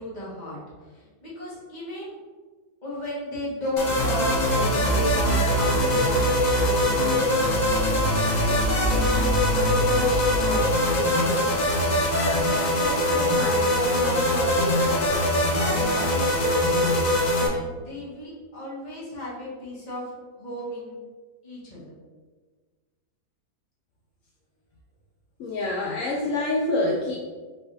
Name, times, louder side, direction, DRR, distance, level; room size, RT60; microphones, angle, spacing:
voice 1, 0.0-2.2 2.8-7.2 7.6-11.6 12.1-15.2 15.5-17.1 17.4-20.1 20.4-21.0 21.4-21.9, left 1 dB, 25° left, -7 dB, 1.5 m, -34 dB
sound 1, 3.8-17.5, left 1 dB, 85° left, 0.3 m, -22 dB
voice 2, 25.4-27.2, left 2 dB, 70° left, -2 dB, 0.7 m, -26 dB
5.5 x 3.3 x 2.6 m, 1.4 s
omnidirectional pair, 1.8 m